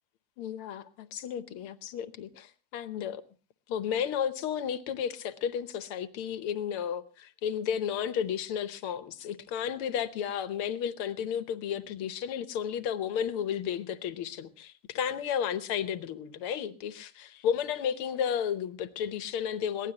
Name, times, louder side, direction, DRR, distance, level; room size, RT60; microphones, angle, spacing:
voice 1, 0.4-3.2 3.7-19.9, left 8 dB, 85° left, 1.8 m, -33 dB
22.0 x 17.0 x 2.9 m
omnidirectional pair, 2.3 m